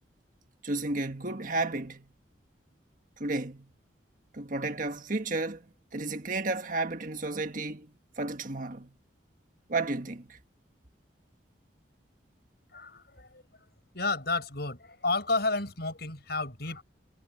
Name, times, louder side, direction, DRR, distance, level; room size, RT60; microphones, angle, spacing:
voice 1, 0.6-2.1 3.2-3.7 4.3-5.6 5.9-8.9 9.7-10.4, right 2 dB, 45° right, 1.7 m, -32 dB
voice 2, 12.7-13.4 13.9-16.8, left 3 dB, 60° left, 6.6 m, -31 dB
head